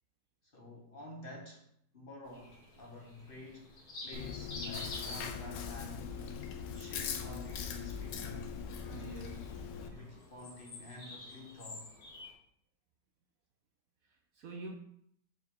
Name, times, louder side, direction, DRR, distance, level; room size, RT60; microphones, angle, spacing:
voice 1, 0.5-1.7 1.9-6.1 6.7-8.5 9.5-11.9, left 2 dB, 40° left, 1.0 m, -50 dB
sound 1, 2.3-12.3, left 2 dB, 65° left, 2.0 m, -50 dB
Chewing mastication, 4.1-9.9, left 7 dB, 90° left, 1.4 m, -41 dB
voice 2, 8.8-10.2 14.0-14.8, right 4 dB, 70° right, 0.9 m, -48 dB
6.4 x 5.1 x 3.7 m
omnidirectional pair, 1.9 m